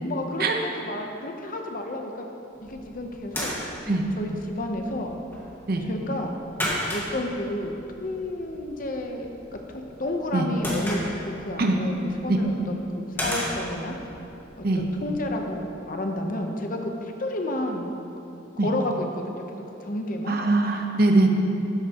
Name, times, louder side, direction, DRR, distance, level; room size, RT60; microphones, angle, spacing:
voice 1, 0.0-2.2 2.6-3.5 4.2-5.1 5.9-6.3 6.9-9.3 9.7-11.9 12.2-14.0 14.6-17.9 18.6-19.4 19.8-20.4, left 1 dB, 45° left, 3 dB, 0.8 m, -31 dB
sound 1, 2.5-15.6, equal, 10° left, 1.7 m, -36 dB
voice 2, 20.3-21.3, right 2 dB, 50° right, 3 dB, 0.8 m, -21 dB
12.5 x 9.5 x 3.0 m, 2.9 s
head